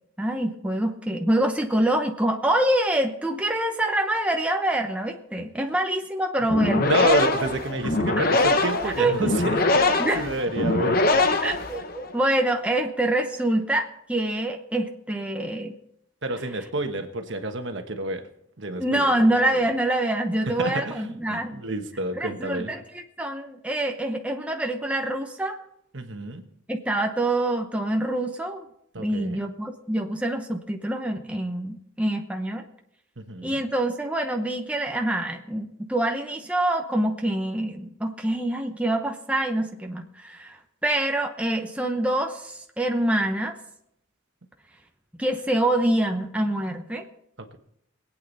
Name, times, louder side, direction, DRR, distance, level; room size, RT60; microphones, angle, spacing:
voice 1, 0.2-6.9 8.8-9.2 10.0-10.3 11.4-15.7 18.8-21.6 22.1-25.6 26.7-28.6 29.0-32.6 33.4-43.6 45.2-47.1, right 1 dB, 5° right, 3 dB, 0.9 m, -25 dB
sound 1, 6.4-12.1, left 2 dB, 45° left, 0.9 m, -23 dB
voice 2, 6.8-11.1 16.2-18.2 18.6-19.1 20.6-22.7 25.9-26.4 28.9-29.4 33.2-33.6, right 2 dB, 60° right, 6 dB, 1.4 m, -29 dB
22.0 x 8.9 x 4.1 m, 0.74 s
head